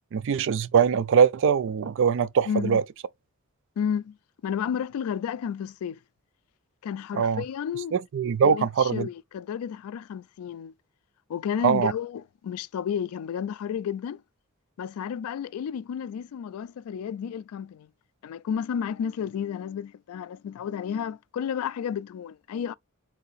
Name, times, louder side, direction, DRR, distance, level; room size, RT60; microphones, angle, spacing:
voice 1, 0.1-2.8 7.1-7.4 7.9-9.1 11.6-11.9, right 7 dB, 60° right, 0.3 m, -22 dB
voice 2, 2.5-2.8 3.8-4.2 4.4-6.0 6.8-8.0 8.4-10.7 11.3-14.2 14.8-17.9 18.2-22.7, left 8 dB, 85° left, 0.3 m, -32 dB
3.8 x 2.6 x 4.0 m
head